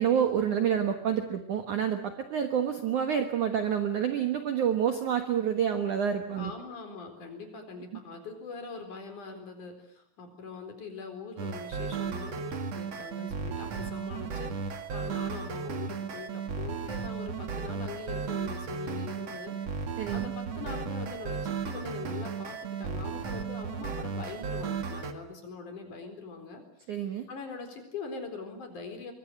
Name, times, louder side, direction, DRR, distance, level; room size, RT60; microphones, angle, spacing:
voice 1, 0.0-6.5 20.0-20.3 26.9-27.3, right 8 dB, 80° right, 7 dB, 1.7 m, -28 dB
voice 2, 6.3-19.6 19.9-26.6 27.3-29.1, left 4 dB, 40° left, 5 dB, 5.1 m, -42 dB
sound 1, 11.4-25.1, right 5 dB, 55° right, 1.8 m, -35 dB
24.0 x 23.5 x 8.0 m, 0.71 s
omnidirectional pair, 5.9 m